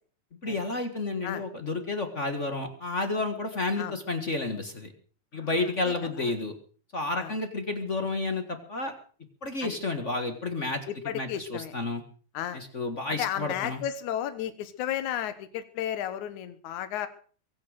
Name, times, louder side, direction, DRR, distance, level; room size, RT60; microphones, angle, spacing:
voice 1, 0.4-4.9 5.3-6.5 6.9-8.9 9.4-10.8 11.1-12.0 12.5-13.8, left 2 dB, 30° left, 7 dB, 1.6 m, -31 dB
voice 2, 5.3-6.3 7.2-7.3 9.6-9.8 10.9-11.7 12.3-12.6 13.1-17.1, left 11 dB, 80° left, 11 dB, 2.6 m, -34 dB
23.0 x 9.0 x 6.5 m, 0.43 s
omnidirectional pair, 3.4 m